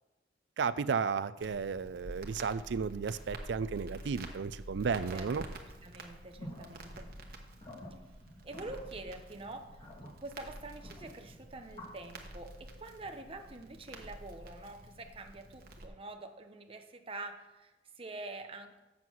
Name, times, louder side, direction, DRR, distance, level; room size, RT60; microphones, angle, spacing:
voice 1, 0.6-5.4, right 5 dB, 75° right, 16 dB, 0.4 m, -33 dB
Crackle, 1.4-15.9, right 1 dB, 55° right, 1.2 m, -48 dB
voice 2, 4.9-5.3 5.8-7.1 8.4-18.8, right 2 dB, 30° right, 5 dB, 0.9 m, -46 dB
sound 1, 6.4-11.9, equal, 30° left, 2.5 m, -50 dB
7.6 x 7.3 x 6.2 m, 1.0 s
head